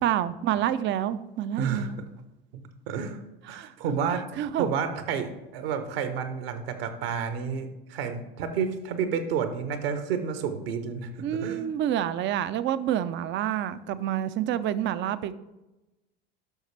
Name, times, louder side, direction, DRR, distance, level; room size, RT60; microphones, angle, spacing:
voice 1, 0.0-2.0 3.5-3.7 4.1-4.7 11.2-15.3, right 11 dB, 40° right, 14 dB, 0.6 m, -28 dB
voice 2, 1.6-2.1 2.9-3.2 3.5-4.3 4.6-11.7, right 6 dB, 70° right, 8 dB, 1.3 m, -30 dB
11.5 x 6.4 x 3.3 m, 0.99 s
hypercardioid pair, 80°, 31 cm